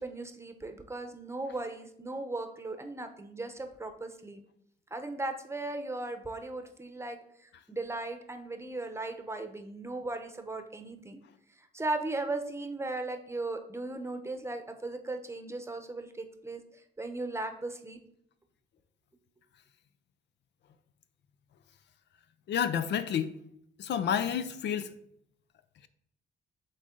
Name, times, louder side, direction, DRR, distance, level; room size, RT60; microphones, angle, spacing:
voice 1, 0.0-4.4 4.9-11.2 11.6-16.6 17.0-18.0, right 2 dB, 15° right, 0.8 m, -37 dB
voice 2, 22.5-23.3 23.8-24.9, left 8 dB, 65° left, 0.5 m, -29 dB
8.1 x 3.7 x 3.8 m
cardioid pair, 90°, 20 cm